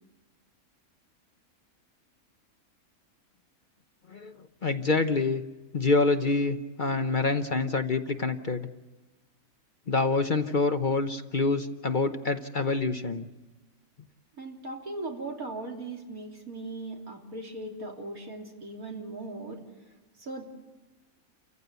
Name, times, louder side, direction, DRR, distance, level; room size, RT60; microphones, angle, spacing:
voice 1, 4.1-5.4 5.7-8.7 9.9-13.3, left 3 dB, 40° left, 8 dB, 0.9 m, -26 dB
voice 2, 14.4-19.9 20.2-20.4, right 2 dB, 80° right, 1 dB, 3.6 m, -39 dB
29.5 x 15.0 x 8.1 m, 1.2 s
omnidirectional pair, 1.5 m